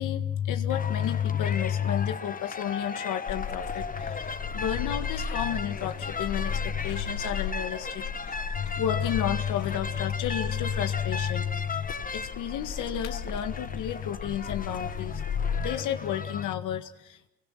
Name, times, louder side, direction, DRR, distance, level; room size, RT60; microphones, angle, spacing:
voice 1, 0.0-17.3, left 10 dB, 90° left, 7 dB, 1.8 m, -31 dB
sound 1, 0.7-16.5, left 4 dB, 30° left, 1.2 m, -37 dB
sound 2, 3.3-15.6, left 6 dB, 65° left, 6.9 m, -36 dB
29.0 x 23.5 x 5.9 m, 0.82 s
cardioid pair, 90°, 30 cm